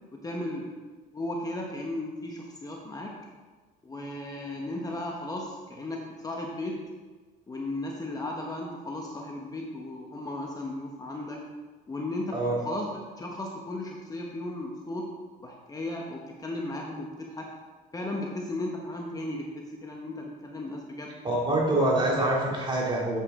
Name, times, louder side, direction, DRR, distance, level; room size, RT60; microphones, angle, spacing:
voice 1, 0.1-0.7 1.1-3.1 3.8-6.8 7.5-11.4 11.9-15.1 15.4-17.5 17.9-21.2, left 1 dB, 20° left, 0 dB, 1.1 m, -35 dB
voice 2, 21.2-23.2, right 1 dB, 30° right, -3 dB, 2.8 m, -25 dB
8.4 x 8.2 x 3.7 m, 1.4 s
cardioid pair, 110°, 17 cm